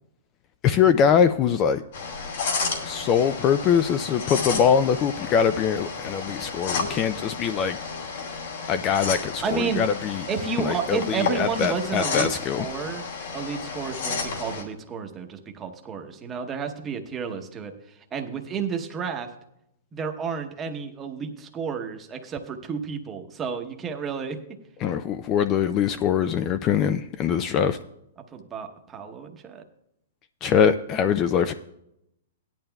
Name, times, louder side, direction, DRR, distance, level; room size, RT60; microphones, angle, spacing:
voice 1, 0.6-1.8 2.8-7.8 8.7-10.3 10.6-12.7 24.8-27.8 30.4-31.5, left 7 dB, 25° left, 12 dB, 0.3 m, -23 dB
sound 1, 1.9-14.6, left 4 dB, 60° left, 2.5 m, -32 dB
voice 2, 9.4-9.9 10.3-12.3 12.6-13.1 13.3-17.7 18.1-19.3 19.9-24.4 28.3-29.6, right 6 dB, 15° right, 4 dB, 0.9 m, -31 dB
17.5 x 10.5 x 2.3 m, 0.82 s
hypercardioid pair, 165°, 0 cm